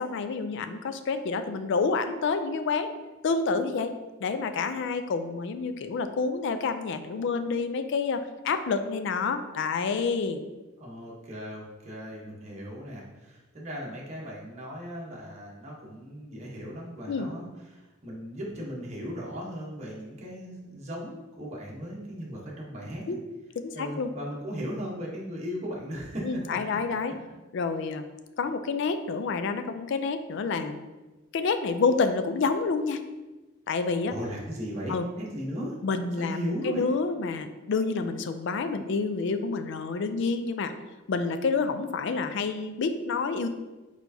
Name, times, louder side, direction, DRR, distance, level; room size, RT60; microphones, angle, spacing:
voice 1, 0.0-2.9 3.2-3.9 4.2-10.4 17.1-17.3 23.1-23.2 23.6-24.1 26.2-27.1 27.5-28.1 28.4-30.8 31.3-33.0 33.7-34.1 34.9-35.1 35.8-40.7 41.1-43.5, left 4 dB, 65° left, 9 dB, 0.4 m, -28 dB
voice 2, 10.8-23.2 23.7-26.8 34.1-35.7 36.1-36.8, equal, 35° right, -4 dB, 0.9 m, -37 dB
4.4 x 4.3 x 2.7 m, 1.2 s
head